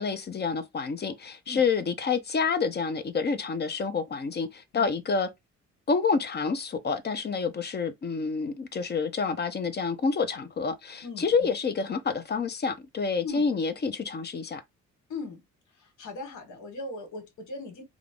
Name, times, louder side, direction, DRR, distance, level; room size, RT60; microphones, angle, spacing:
voice 1, 0.0-5.3 5.9-14.6, left 5 dB, 35° left, 0.6 m, -28 dB
voice 2, 11.0-11.5 13.2-13.4 15.1-15.4 15.7-17.8, left 3 dB, 75° left, 1.4 m, -39 dB
3.6 x 2.0 x 3.5 m
cardioid pair, 90°, 30 cm